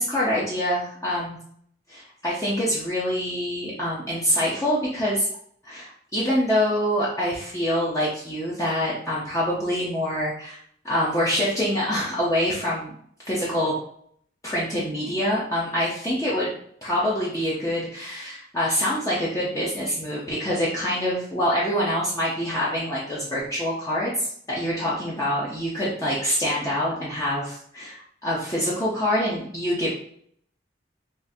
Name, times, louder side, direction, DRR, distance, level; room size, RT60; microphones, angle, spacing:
voice 1, 0.0-1.4 1.9-5.3 5.6-10.6 10.8-12.9 13.2-13.8 14.4-16.5 16.8-29.9, equal, 20° left, -7 dB, 0.6 m, -25 dB
3.5 x 2.5 x 2.6 m, 0.63 s
head